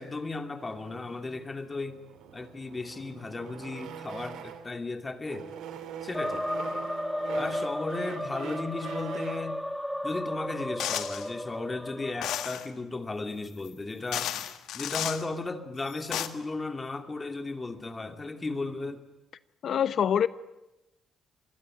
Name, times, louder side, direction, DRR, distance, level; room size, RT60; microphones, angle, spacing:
voice 1, 0.0-2.0 2.3-5.5 6.0-6.4 7.3-9.7 10.0-14.4 14.7-19.0, left 3 dB, 25° left, 8 dB, 2.8 m, -35 dB
sound 1, 0.6-4.8 5.2-9.5, right 8 dB, 85° right, 2.9 m, -43 dB
sound 2, 6.1-12.5, left 1 dB, 5° left, 1.5 m, -34 dB
sound 3, 10.8-11.3 12.2-12.7 13.6-13.7 14.1-15.2 15.9-16.3, left 11 dB, 85° left, 1.7 m, -33 dB
voice 2, 19.6-20.3, left 8 dB, 60° left, 15 dB, 0.9 m, -24 dB
26.5 x 21.0 x 9.9 m, 0.95 s
cardioid pair, 90°, 0 cm